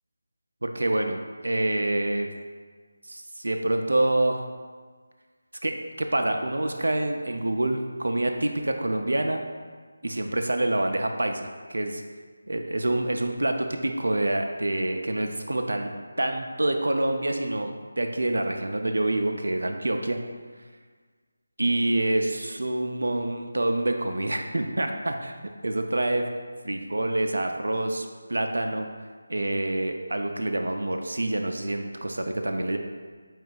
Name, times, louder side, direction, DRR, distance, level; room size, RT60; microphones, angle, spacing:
voice 1, 0.6-2.3 3.1-4.4 5.6-9.4 10.0-12.0 12.5-15.9 16.2-20.2 21.6-25.3 25.6-26.3 26.6-28.9 29.3-32.8, right 1 dB, 75° right, 4 dB, 0.3 m, -27 dB
4.7 x 2.3 x 3.7 m, 1.5 s
figure-of-eight pair, 165°, 0 cm